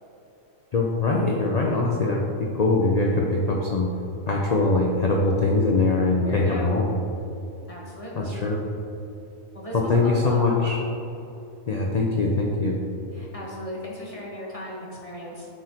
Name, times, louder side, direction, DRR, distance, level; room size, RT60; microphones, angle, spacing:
voice 1, 0.7-3.9 4.3-6.9 8.2-8.6 9.7-10.8 11.7-12.8, left 3 dB, 70° left, -1 dB, 0.4 m, -22 dB
voice 2, 6.2-6.7 7.7-8.4 9.5-10.7 13.1-15.5, equal, 30° left, -4 dB, 0.9 m, -37 dB
7.5 x 4.6 x 2.9 m, 2.8 s
omnidirectional pair, 1.4 m